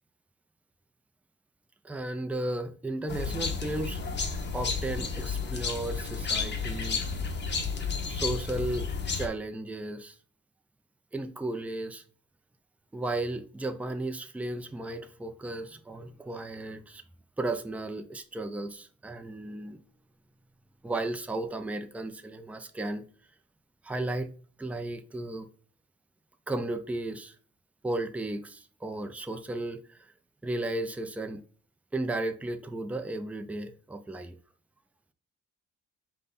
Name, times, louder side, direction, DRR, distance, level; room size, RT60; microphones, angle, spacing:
voice 1, 1.8-4.0 4.5-7.0 8.1-8.9 9.1-10.2 11.1-12.0 12.9-17.0 17.4-19.8 20.8-23.0 23.8-24.3 24.6-25.5 26.5-27.4 27.8-30.1 30.4-31.4 31.9-34.3, right 2 dB, 5° right, 0.5 m, -34 dB
sound 1, 3.1-9.3, left 5 dB, 35° left, 0.9 m, -32 dB
5.1 x 2.3 x 4.0 m
cardioid pair, 90°, 30 cm